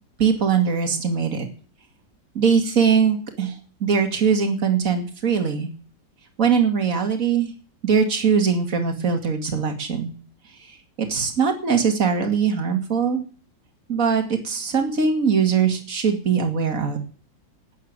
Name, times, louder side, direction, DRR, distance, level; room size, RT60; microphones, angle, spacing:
voice 1, 0.2-1.5 2.3-3.6 3.8-5.7 6.4-7.5 7.8-10.1 10.7-13.2 13.9-17.0, right 6 dB, 45° right, 4 dB, 2.6 m, -21 dB
12.5 x 9.3 x 9.6 m, 0.41 s
omnidirectional pair, 2.0 m